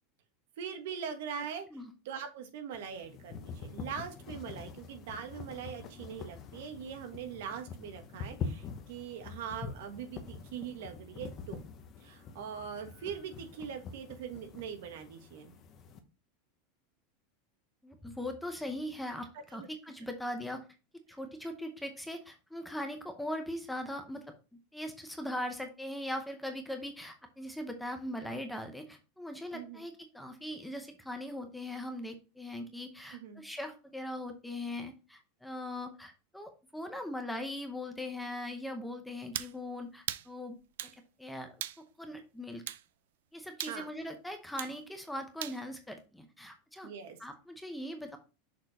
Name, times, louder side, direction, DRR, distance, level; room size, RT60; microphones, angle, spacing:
voice 1, 0.6-1.7 2.0-11.6 12.0-15.6 19.3-19.7 29.5-29.8 33.1-33.4 43.6-43.9 46.8-47.2, right 7 dB, 65° right, 7 dB, 1.4 m, -42 dB
sound 1, 2.7-16.0, left 5 dB, 25° left, 0.9 m, -45 dB
voice 2, 17.8-20.6 21.1-24.2 24.7-40.6 41.2-41.6 42.0-42.6 43.3-46.9 47.2-48.2, left 1 dB, ahead, 5 dB, 0.7 m, -40 dB
sound 2, 39.3-39.6 40.1-40.3 40.8-41.0 41.6-41.8 42.7-42.8 43.6-43.8 44.6-44.8 45.4-45.6, right 12 dB, 80° right, 0.5 m, -38 dB
6.4 x 4.4 x 4.0 m, 0.30 s
supercardioid pair, 175°, 0 cm